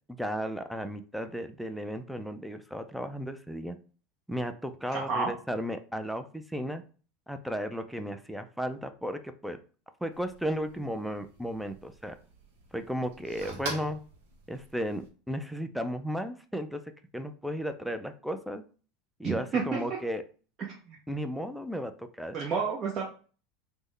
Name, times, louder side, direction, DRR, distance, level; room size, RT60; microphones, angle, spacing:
voice 1, 0.1-3.8 4.3-6.8 7.3-9.6 10.0-12.2 12.7-14.0 14.5-16.8 17.1-18.6 19.2-20.2 21.1-22.3, equal, ahead, 8 dB, 0.4 m, -34 dB
voice 2, 4.9-5.3 19.2-19.8 20.6-21.0 22.3-23.0, right 5 dB, 40° right, -2 dB, 0.7 m, -30 dB
sound 1, 10.1-15.1, right 2 dB, 75° right, 0.8 m, -45 dB
3.4 x 2.1 x 3.3 m, 0.39 s
hypercardioid pair, 95°, 0 cm